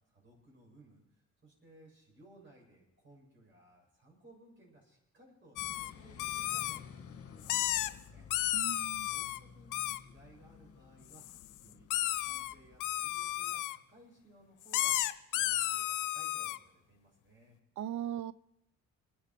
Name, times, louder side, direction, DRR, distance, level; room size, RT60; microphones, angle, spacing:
voice 1, 0.1-8.3 9.1-15.0 15.3-17.6, right 1 dB, 40° right, 7.5 m, -61 dB
sound 1, 5.6-5.9 6.2-6.8 7.4-7.9 8.3-9.4 9.7-10.0 11.1-11.4 11.9-12.5 12.8-13.8 14.7-16.6, left 15 dB, 90° left, 0.7 m, -33 dB
sound 2, 5.6-13.6, left 6 dB, 50° left, 1.9 m, -54 dB
voice 2, 8.5-9.1 17.8-18.3, right 11 dB, 70° right, 0.7 m, -38 dB
28.0 x 10.0 x 4.6 m
cardioid pair, 90°, 30 cm